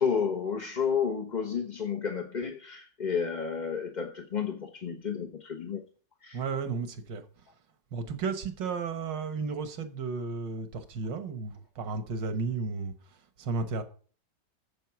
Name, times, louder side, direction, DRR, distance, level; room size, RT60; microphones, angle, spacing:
voice 1, 0.0-5.8 6.2-6.4, left 6 dB, 35° left, 0.8 m, -31 dB
voice 2, 6.3-7.4 7.9-13.8, right 4 dB, 90° right, 1.8 m, -34 dB
9.1 x 7.4 x 5.9 m
omnidirectional pair, 1.9 m